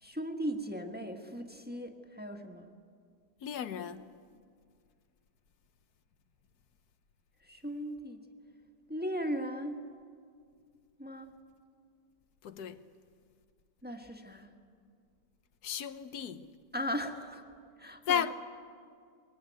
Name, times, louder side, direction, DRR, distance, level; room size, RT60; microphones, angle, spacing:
voice 1, 0.0-2.7 7.4-8.3 8.9-9.8 11.0-11.4 13.8-14.5 16.7-17.4 17.8-18.2, equal, 5° right, 1.4 m, -37 dB
voice 2, 3.4-4.1 12.4-12.8 15.6-16.5 18.1-18.3, left 8 dB, 70° left, 1.4 m, -34 dB
23.0 x 21.5 x 9.3 m
omnidirectional pair, 1.8 m